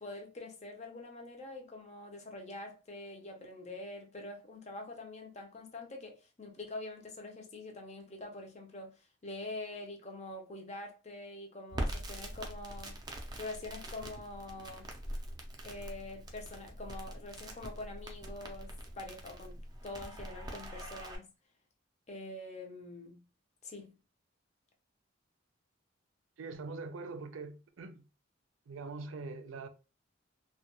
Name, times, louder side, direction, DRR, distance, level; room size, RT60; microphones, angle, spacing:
voice 1, 0.0-13.0 13.4-14.9 15.6-19.6 19.8-21.3 22.1-23.2 23.6-24.0, left 2 dB, 35° left, 0.6 m, -45 dB
Crackle, 11.7-21.2, right 1 dB, 20° right, 0.4 m, -43 dB
voice 2, 26.4-28.0 28.7-29.7, right 3 dB, 85° right, 0.4 m, -43 dB
2.2 x 2.2 x 2.9 m
head